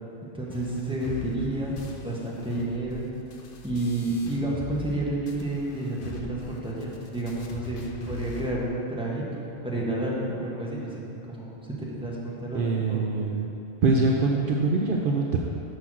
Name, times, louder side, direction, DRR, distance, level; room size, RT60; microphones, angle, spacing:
voice 1, 0.2-1.8 2.0-3.1 3.6-9.3 9.6-13.0, right 1 dB, 5° right, -5 dB, 1.3 m, -30 dB
sound 1, 0.5-5.0 5.3-8.5, left 4 dB, 60° left, 0.9 m, -41 dB
voice 2, 12.5-13.5 13.8-15.4, right 3 dB, 60° right, 0 dB, 0.7 m, -24 dB
6.5 x 5.8 x 6.1 m, 2.8 s
omnidirectional pair, 1.1 m